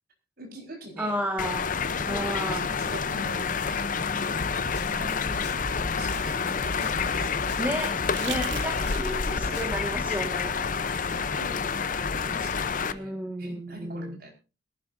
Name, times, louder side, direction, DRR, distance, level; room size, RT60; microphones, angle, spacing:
voice 1, 0.4-1.2 1.9-4.6 4.9-5.5 5.9-8.3 9.3-9.6 10.9-11.7 12.2-14.3, equal, 50° right, 1 dB, 4.8 m, -43 dB
voice 2, 1.0-1.7 2.1-2.6 7.1-7.2 7.6-7.9 8.2-10.6 12.9-14.2, equal, 10° right, 4 dB, 1.6 m, -32 dB
sound 1, 1.4-12.9, left 5 dB, 45° left, 0.7 m, -28 dB
Snare drum, 4.4-9.9, left 1 dB, 60° left, 2.8 m, -37 dB
sound 2, 4.7-7.0 7.9-9.4 11.1-11.2, right 9 dB, 75° right, 1.3 m, -43 dB
21.5 x 12.0 x 2.6 m, 0.30 s
head